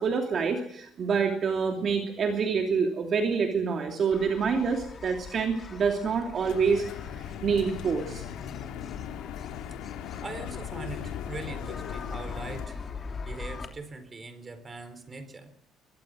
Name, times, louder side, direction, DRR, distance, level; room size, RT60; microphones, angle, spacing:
voice 1, 0.0-6.8 7.1-8.2, right 5 dB, 35° right, 3 dB, 2.9 m, -27 dB
sound 1, 4.1-13.6, left 5 dB, 30° left, 3.1 m, -42 dB
sound 2, 6.4-12.7, left 10 dB, 80° left, 2.8 m, -39 dB
voice 2, 10.2-12.8 13.2-15.5, right 3 dB, 20° right, 10 dB, 4.0 m, -41 dB
23.0 x 23.0 x 6.4 m, 0.73 s
cardioid pair, 155°, 0 cm